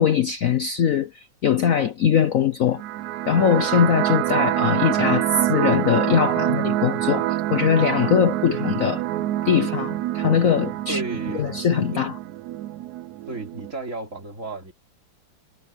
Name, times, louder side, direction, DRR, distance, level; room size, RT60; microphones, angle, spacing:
voice 1, 0.0-2.8 3.3-7.2 7.5-9.0 9.4-11.0 11.4-12.2, left 8 dB, 60° left, 0.9 m, -21 dB
sound 1, 2.7-13.7, right 14 dB, 75° right, 0.9 m, -26 dB
voice 2, 10.9-11.5 11.9-12.0 13.3-14.7, right 2 dB, 40° right, 4.0 m, -33 dB
omnidirectional pair, 2.1 m